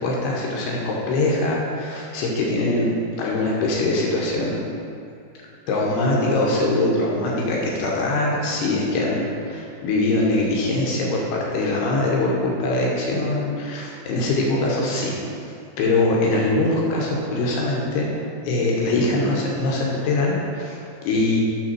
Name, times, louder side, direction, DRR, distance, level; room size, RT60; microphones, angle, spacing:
voice 1, 0.0-2.9 3.2-4.6 5.7-15.2 15.4-18.1 18.4-21.4, left 2 dB, 75° left, -3 dB, 2.7 m, -22 dB
9.0 x 3.5 x 6.0 m, 2.5 s
omnidirectional pair, 5.2 m